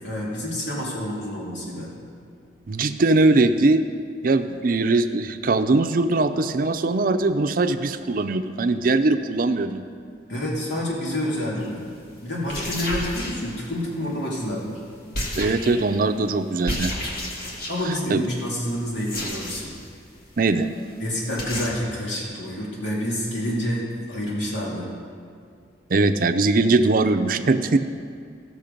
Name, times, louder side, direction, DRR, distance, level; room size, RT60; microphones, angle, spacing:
voice 1, 0.0-1.9 10.3-11.9 12.2-14.8 17.7-19.7 21.0-24.9, equal, 85° left, -5 dB, 2.4 m, -28 dB
voice 2, 2.7-3.8 4.2-9.8 15.4-16.9 17.8-18.2 20.4-20.7 25.9-27.8, right 3 dB, 50° right, 9 dB, 0.5 m, -21 dB
sound 1, 11.6-11.8 12.4-13.9 15.1-16.0 16.6-18.0 19.0-19.9 20.2-20.3 20.6-20.7 20.9-21.0 21.4-21.7, left 1 dB, 55° left, 1.8 m, -31 dB
15.5 x 6.5 x 5.2 m, 2.2 s
head